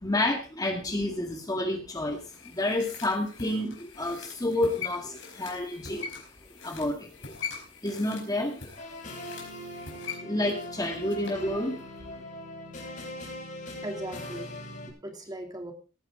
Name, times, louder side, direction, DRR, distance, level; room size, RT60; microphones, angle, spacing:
voice 1, 0.0-6.1 6.6-7.3 7.8-8.8 10.2-11.8, left 1 dB, 20° left, 4 dB, 1.7 m, -30 dB
sound 1, 2.1-11.5 11.8-11.9, left 6 dB, 75° left, 4.7 m, -43 dB
sound 2, 8.8-14.9, left 1 dB, 45° left, 6.4 m, -40 dB
voice 2, 13.8-15.7, right 1 dB, 20° right, 4 dB, 2.7 m, -39 dB
18.0 x 9.8 x 3.7 m, 0.33 s
head